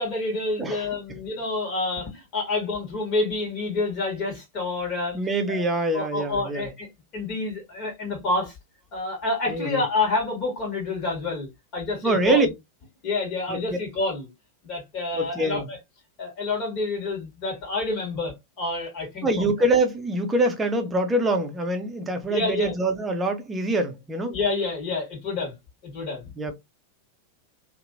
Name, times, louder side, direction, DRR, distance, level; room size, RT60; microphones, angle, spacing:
voice 1, 0.0-5.2 5.5-5.6 5.9-6.9 7.1-8.5 8.9-12.4 13.0-14.3 14.6-15.8 16.2-19.4 22.3-22.7 24.3-25.5 25.8-26.2, left 3 dB, 40° left, 1.5 m, -28 dB
voice 2, 0.6-1.2 5.1-6.7 9.5-9.8 12.0-12.5 13.5-13.8 15.1-15.7 19.2-24.4 26.4-26.5, right 2 dB, 15° right, 0.7 m, -25 dB
2.8 x 2.5 x 2.6 m
figure-of-eight pair, 90°, 0 cm